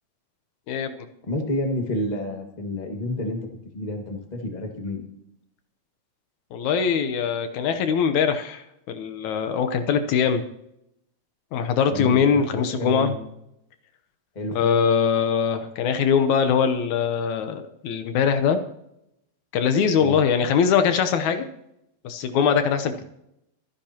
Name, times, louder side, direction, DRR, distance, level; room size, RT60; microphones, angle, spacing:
voice 1, 0.7-1.1 6.5-10.4 11.5-13.2 14.5-18.6 19.5-21.5 22.0-23.0, left 7 dB, 75° left, 8 dB, 2.3 m, -22 dB
voice 2, 1.3-3.4 3.7-5.1 11.9-13.1 14.3-14.6 20.0-20.2, left 1 dB, 20° left, 3 dB, 1.3 m, -29 dB
24.0 x 10.5 x 2.9 m, 0.79 s
omnidirectional pair, 3.5 m